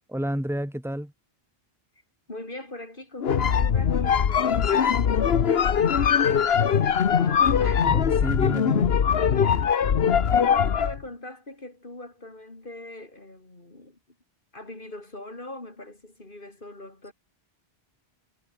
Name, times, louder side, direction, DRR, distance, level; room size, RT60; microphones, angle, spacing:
voice 1, 0.1-1.1 7.8-8.9, equal, ahead, 2.9 m, -30 dB
voice 2, 2.3-7.9 8.1-8.7 9.4-9.6 10.3-14.0 14.5-17.1, left 2 dB, 55° left, 4.1 m, -41 dB
sound 1, 3.2-11.0, left 7 dB, 75° left, 1.2 m, -21 dB
omnidirectional pair, 1.1 m